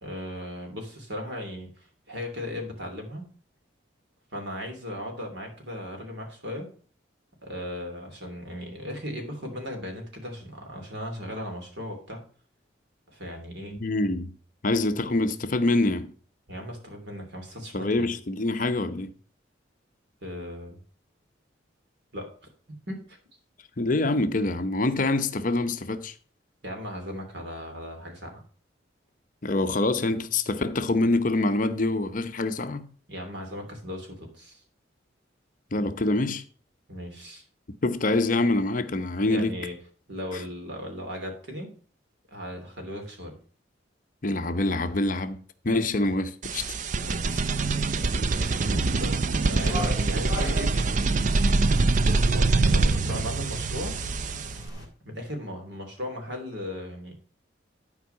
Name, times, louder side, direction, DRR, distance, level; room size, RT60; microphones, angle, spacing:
voice 1, 0.0-3.2 4.3-6.7 7.4-12.2 13.1-13.8 16.5-18.1 20.2-20.8 22.1-22.3 22.9-23.2 26.6-28.4 33.1-34.6 36.9-37.4 39.3-39.7 40.1-41.7 42.3-43.4 47.0-47.7 48.3-51.2 52.0-53.9 55.0-57.1, left 1 dB, 65° right, 3.1 m, -37 dB
voice 2, 13.7-14.3 14.6-16.1 17.7-19.1 23.8-26.1 29.4-32.9 35.7-36.4 37.8-39.6 40.3-40.4 44.2-46.7, left 2 dB, 45° left, 0.7 m, -25 dB
sound 1, 46.4-54.7, right 3 dB, 40° right, 0.4 m, -24 dB
sound 2, 49.5-54.9, equal, 20° right, 2.9 m, -38 dB
11.5 x 4.7 x 5.5 m
head